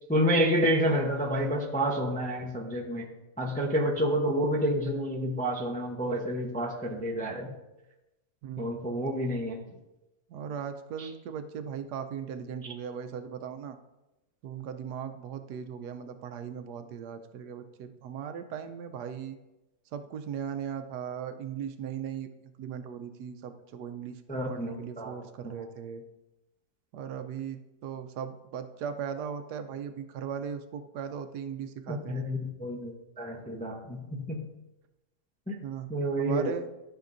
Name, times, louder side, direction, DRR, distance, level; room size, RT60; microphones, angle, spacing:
voice 1, 0.1-3.1 3.4-7.5 8.6-9.6 11.0-11.1 24.3-25.2 25.4-25.5 31.9-34.5 35.5-35.6 35.9-36.5, equal, 10° left, 0 dB, 0.4 m, -29 dB
voice 2, 8.4-9.1 10.3-13.8 14.4-19.4 19.9-24.2 24.5-26.0 26.9-32.2 35.6-35.9 36.2-36.7, right 8 dB, 85° right, 8 dB, 1.2 m, -38 dB
13.0 x 5.9 x 2.6 m, 0.98 s
omnidirectional pair, 1.7 m